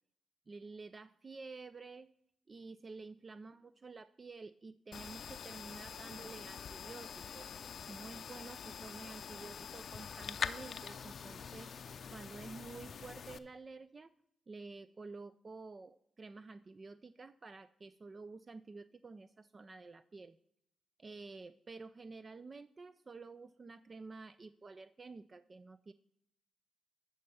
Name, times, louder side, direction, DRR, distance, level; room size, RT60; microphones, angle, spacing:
voice 1, 0.5-2.1 2.5-7.5 7.9-11.8 12.1-14.1 14.5-20.4 21.0-25.9, right 3 dB, 40° right, 13 dB, 0.4 m, -50 dB
sound 1, 4.9-13.4, left 7 dB, 60° left, 0.5 m, -45 dB
11.0 x 4.3 x 6.8 m, 0.75 s
supercardioid pair, 55°, 0 cm